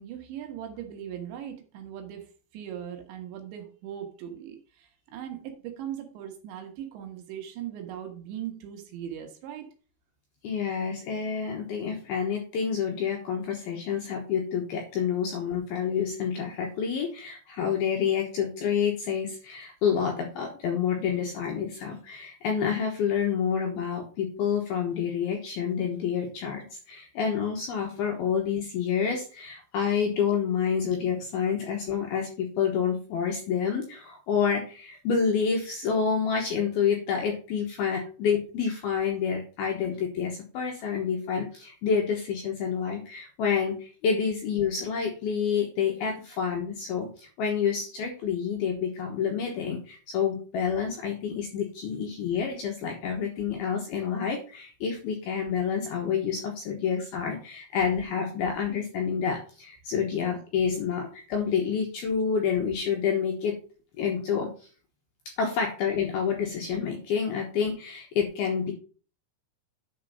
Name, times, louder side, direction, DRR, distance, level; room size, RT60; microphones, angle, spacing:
voice 1, 0.0-9.7, right 10 dB, 70° right, 3 dB, 3.3 m, -39 dB
voice 2, 10.4-63.6 64.0-64.5 65.4-68.7, left 7 dB, 70° left, 2 dB, 2.4 m, -28 dB
9.5 x 4.5 x 5.3 m, 0.39 s
omnidirectional pair, 5.7 m